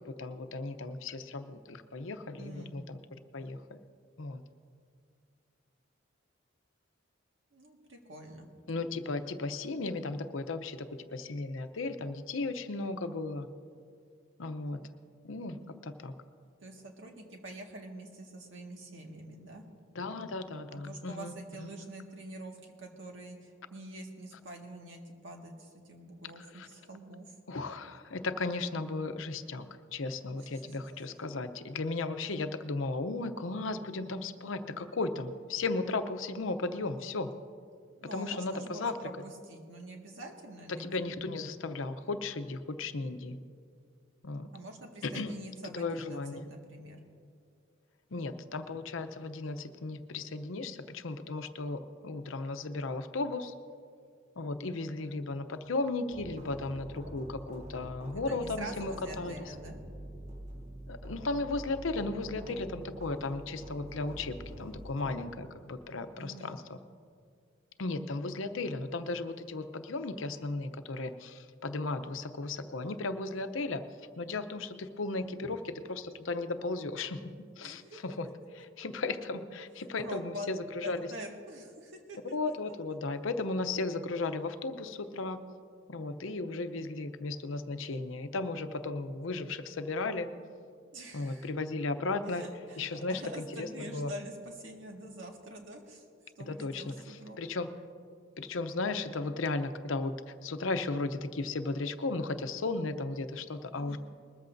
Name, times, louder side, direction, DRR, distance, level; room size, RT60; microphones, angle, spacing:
voice 1, 0.2-3.0 3.3-3.8 4.2-4.4 8.7-13.5 14.4-14.8 15.2-15.6 15.8-16.1 19.9-21.3 21.6-21.7 26.5-26.7 27.5-29.7 29.9-37.3 38.1-38.9 40.7-43.4 44.2-44.5 45.0-45.3 45.7-46.5 48.1-53.5 54.4-59.5 60.9-66.8 67.8-73.8 74.2-77.2 77.6-78.3 78.8-81.0 82.3-85.4 85.9-90.3 91.1-92.4 92.8-94.1 96.5-97.7 98.4-104.0, left 3 dB, 80° left, 9 dB, 0.7 m, -35 dB
voice 2, 2.4-2.8 7.5-8.5 16.6-19.6 20.7-27.3 30.4-30.8 38.0-41.0 44.5-47.0 58.3-59.7 66.2-66.6 77.6-78.0 80.0-80.5 80.8-82.3 90.9-91.5 92.3-96.0 96.4-97.4 103.7-104.0, right 1 dB, 70° right, 1 dB, 1.8 m, -45 dB
sound 1, 56.1-65.3, equal, 35° right, 1.0 m, -45 dB
21.0 x 14.0 x 2.6 m, 2.2 s
head